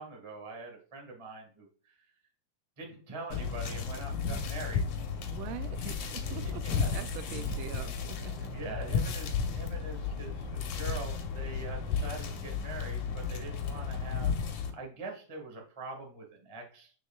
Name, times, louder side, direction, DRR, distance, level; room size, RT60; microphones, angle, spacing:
voice 1, 0.0-2.1 2.8-4.8 5.7-6.1 6.7-7.0 7.3-7.5 8.5-16.9, right 3 dB, 30° right, 1 dB, 0.5 m, -43 dB
sound 1, 3.3-14.7, left 6 dB, 65° left, 2.3 m, -33 dB
voice 2, 5.3-5.8 6.1-8.5, right 12 dB, 80° right, 11 dB, 2.1 m, -43 dB
7.0 x 6.3 x 2.4 m, 0.43 s
omnidirectional pair, 4.0 m